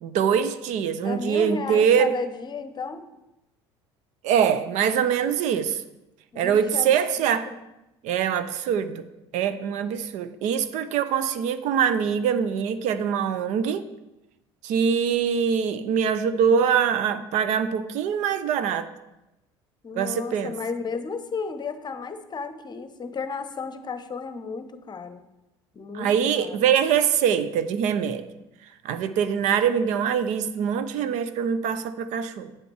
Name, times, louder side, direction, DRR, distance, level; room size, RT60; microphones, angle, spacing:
voice 1, 0.0-2.1 4.2-5.8 6.4-7.5 8.0-9.0 9.3-13.8 14.6-18.9 20.0-20.5 25.9-28.2 28.8-32.5, right 7 dB, 55° right, 12 dB, 0.7 m, -23 dB
voice 2, 1.0-3.0 6.3-7.6 19.8-25.2 25.7-26.6, left 5 dB, 30° left, 10 dB, 0.9 m, -34 dB
8.8 x 7.7 x 4.8 m, 0.95 s
hypercardioid pair, 65°, 14 cm